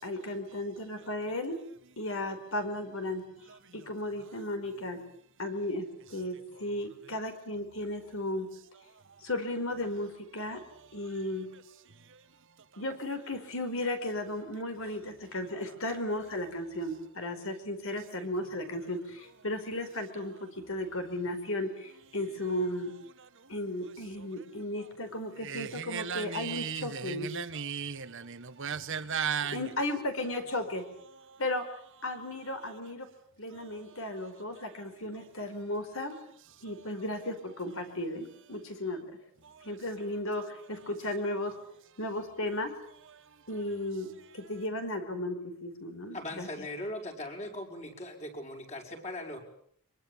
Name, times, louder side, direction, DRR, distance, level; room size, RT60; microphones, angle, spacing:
voice 1, 0.0-1.6 2.0-3.2 3.7-5.0 5.4-8.5 9.2-10.6 10.9-11.5 12.8-22.9 23.5-27.3 29.5-30.9 31.4-31.7 32.0-33.1 33.4-36.1 36.6-39.2 39.6-41.5 42.0-42.7 43.5-46.7, left 1 dB, 65° left, 4.8 m, -35 dB
voice 2, 25.4-29.6, right 7 dB, 60° right, 1.4 m, -35 dB
voice 3, 46.1-49.4, left 1 dB, 30° left, 5.7 m, -39 dB
25.0 x 23.5 x 8.4 m
head